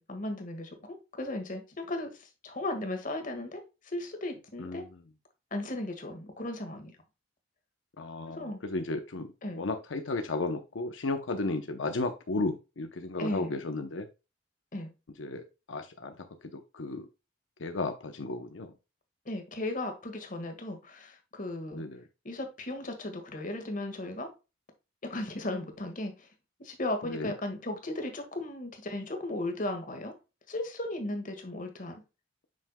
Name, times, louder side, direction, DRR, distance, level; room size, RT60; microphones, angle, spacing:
voice 1, 0.0-4.9 5.5-7.0 8.3-8.6 9.4-9.6 13.2-13.5 14.7-14.9 19.2-21.8 22.2-24.3 25.0-26.3 26.6-30.1 30.5-32.0, left 1 dB, 45° left, 1.6 m, -36 dB
voice 2, 8.0-14.1 15.2-17.1 17.6-18.7 21.7-22.0 27.0-27.3, left 2 dB, 85° left, 0.7 m, -34 dB
7.6 x 5.7 x 2.2 m
head